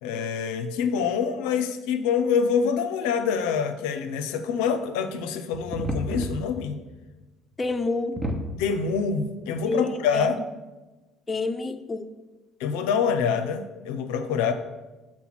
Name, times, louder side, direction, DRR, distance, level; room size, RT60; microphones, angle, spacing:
voice 1, 0.0-6.8 8.6-10.4 12.6-14.5, left 6 dB, 80° left, 7 dB, 0.5 m, -26 dB
sound 1, 5.2-5.3 5.5-6.9 7.2-7.3 7.6-7.7 8.2-8.8 9.5-9.6, equal, 20° right, 1.2 m, -30 dB
voice 2, 7.6-8.3 9.7-10.4 11.3-12.0, left 3 dB, 25° left, 8 dB, 0.5 m, -28 dB
5.7 x 4.3 x 6.1 m, 1.2 s
hypercardioid pair, 65°, 0 cm